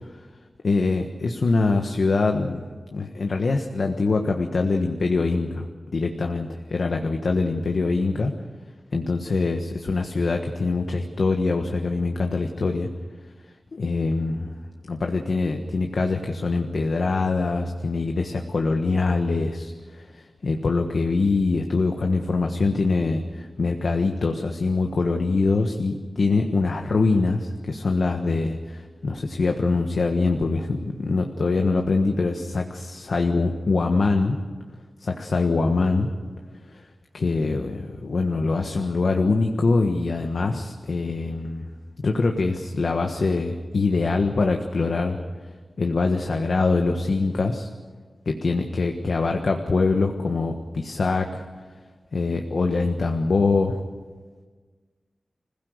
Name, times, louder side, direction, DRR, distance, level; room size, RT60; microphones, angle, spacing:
voice 1, 0.6-2.6 2.9-5.7 5.9-8.3 8.9-12.9 13.7-14.5 14.9-34.4 35.0-36.1 36.7-36.8 37.1-41.7 42.0-45.2 45.8-47.7 48.2-51.4 52.1-53.8, left 3 dB, 70° left, 3 dB, 1.4 m, -24 dB
26.0 x 16.5 x 8.1 m, 1.4 s
wide cardioid pair, 100°, 0 cm